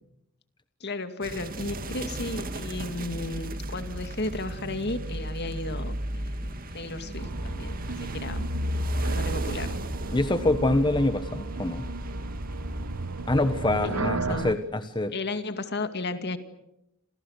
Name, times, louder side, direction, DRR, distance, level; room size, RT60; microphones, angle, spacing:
voice 1, 0.8-8.5 9.0-9.8 13.8-14.6 15.1-16.4, left 2 dB, 50° left, 9 dB, 2.4 m, -34 dB
sound 1, 1.2-14.0, right 1 dB, 40° right, 2.2 m, -34 dB
sound 2, 7.2-14.5, right 3 dB, 75° right, 1.0 m, -35 dB
voice 2, 10.1-11.9 13.3-15.1, left 2 dB, 20° left, 9 dB, 1.3 m, -25 dB
29.0 x 28.5 x 6.6 m, 0.81 s
head